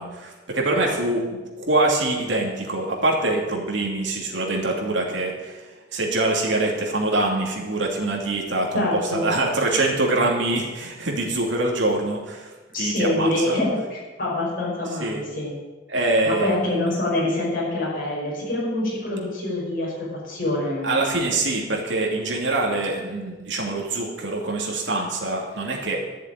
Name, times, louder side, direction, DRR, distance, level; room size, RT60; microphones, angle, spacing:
voice 1, 0.0-5.6 5.9-13.6 15.0-15.2 15.9-16.7 20.8-26.0, right 2 dB, 75° right, -2 dB, 2.7 m, -24 dB
voice 2, 8.7-9.3 12.7-15.5 16.3-19.9 20.2-21.1, left 1 dB, 50° left, -6 dB, 5.4 m, -25 dB
12.0 x 7.3 x 9.0 m, 1.3 s
head